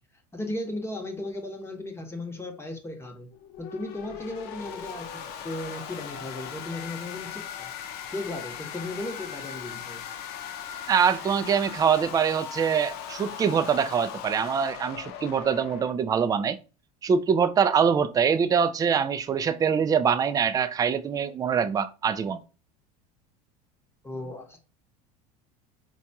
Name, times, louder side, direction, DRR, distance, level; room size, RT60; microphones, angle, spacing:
voice 1, 0.3-3.3 3.6-5.1 5.4-7.7 8.1-10.0 24.0-24.6, left 2 dB, 10° left, 1.0 m, -36 dB
sound 1, 3.3-15.9, left 8 dB, 55° left, 0.6 m, -39 dB
voice 2, 10.9-16.6 17.0-22.4, right 7 dB, 20° right, 0.3 m, -24 dB
4.5 x 2.3 x 2.7 m
hypercardioid pair, 90°, 20 cm